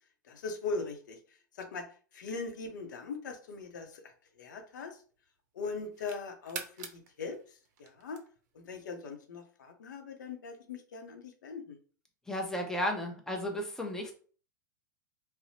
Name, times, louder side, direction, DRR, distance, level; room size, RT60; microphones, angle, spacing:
voice 1, 0.2-1.9 2.1-5.0 5.5-8.2 8.5-11.8, left 4 dB, 75° left, 5 dB, 0.6 m, -40 dB
sound 1, 3.5-5.2 5.6-8.6, right 7 dB, 65° right, 0.5 m, -47 dB
voice 2, 12.3-14.1, left 1 dB, 5° left, 2 dB, 0.6 m, -34 dB
2.6 x 2.0 x 2.7 m, 0.41 s
hypercardioid pair, 100°, 10 cm